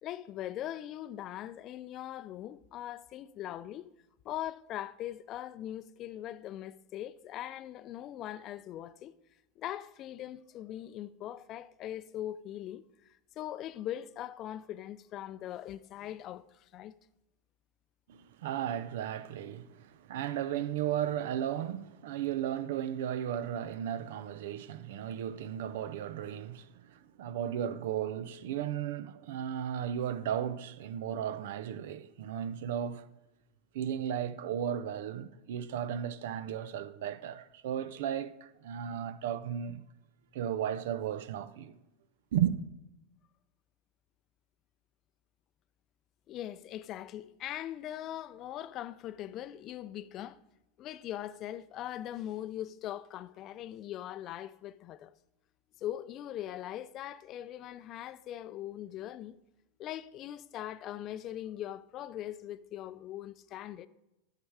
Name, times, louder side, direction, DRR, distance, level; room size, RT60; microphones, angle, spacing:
voice 1, 0.0-3.9 4.2-9.1 9.6-12.8 13.4-16.9 46.3-50.4 50.8-55.1 55.8-59.4 59.8-63.9, left 12 dB, 45° left, 0.4 m, -41 dB
voice 2, 18.1-33.1 33.7-39.8 40.3-41.8 42.3-42.6, right 10 dB, 75° right, 0.5 m, -35 dB
9.7 x 6.6 x 4.7 m
hypercardioid pair, 105°, 0 cm